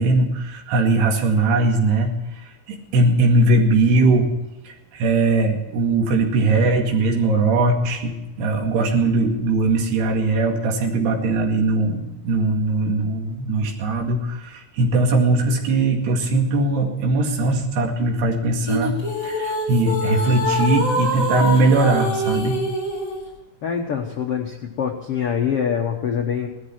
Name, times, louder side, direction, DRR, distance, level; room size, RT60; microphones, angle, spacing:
voice 1, 0.0-2.1 2.4-4.3 4.7-18.9 19.2-22.6, right 2 dB, 85° right, 2 dB, 4.2 m, -20 dB
sound 1, 18.7-23.2, left 1 dB, 25° left, 4.1 m, -25 dB
voice 2, 23.6-26.5, left 7 dB, 75° left, 2 dB, 1.3 m, -24 dB
18.0 x 13.0 x 4.5 m, 1.0 s
omnidirectional pair, 4.6 m